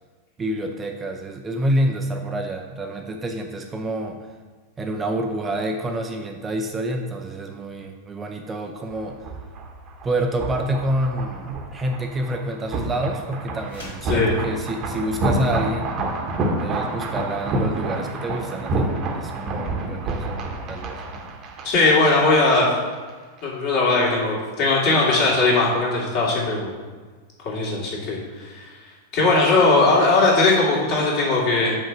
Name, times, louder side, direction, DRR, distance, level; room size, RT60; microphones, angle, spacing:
voice 1, 0.4-4.2 4.8-9.2 10.0-15.9 16.6-21.0, right 1 dB, 15° right, 3 dB, 0.6 m, -28 dB
sound 1, 8.9-22.7 22.9-23.1, right 2 dB, 30° right, 1.1 m, -28 dB
sound 2, 13.6-14.2, left 1 dB, 65° left, 2.4 m, -39 dB
voice 2, 21.6-22.7 23.4-26.7 27.4-28.7 29.1-31.8, left 3 dB, 45° left, -5 dB, 2.5 m, -19 dB
6.4 x 4.4 x 6.0 m, 1.4 s
figure-of-eight pair, 90°, 0 cm